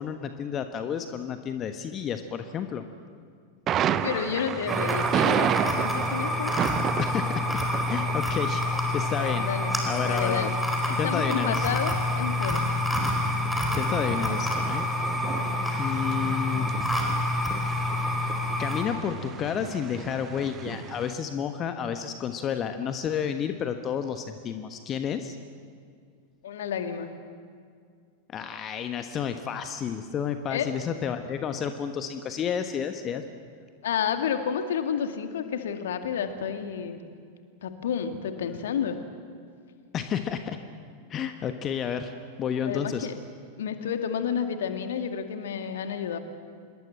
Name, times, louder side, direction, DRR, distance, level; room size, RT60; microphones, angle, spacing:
voice 1, 0.0-2.8 7.0-7.5 7.9-9.5 9.8-10.6 10.9-11.7 13.7-14.8 15.8-16.7 18.6-25.4 28.3-33.2 39.9-40.6 41.1-42.1 42.4-43.1, left 8 dB, 30° left, 8 dB, 1.3 m, -31 dB
Thunder, 3.7-21.1, right 9 dB, 30° right, 1.0 m, -33 dB
voice 2, 4.0-6.5 9.2-9.7 10.0-10.5 10.9-12.6 15.2-15.8 26.4-27.1 30.5-30.7 33.8-37.0 37.6-39.0 42.6-43.1 43.6-46.2, left 8 dB, 60° left, 7 dB, 2.1 m, -30 dB
sound 1, 4.7-18.8, left 2 dB, ahead, 4.6 m, -28 dB
26.5 x 22.0 x 7.7 m, 2.2 s
figure-of-eight pair, 90°, 0 cm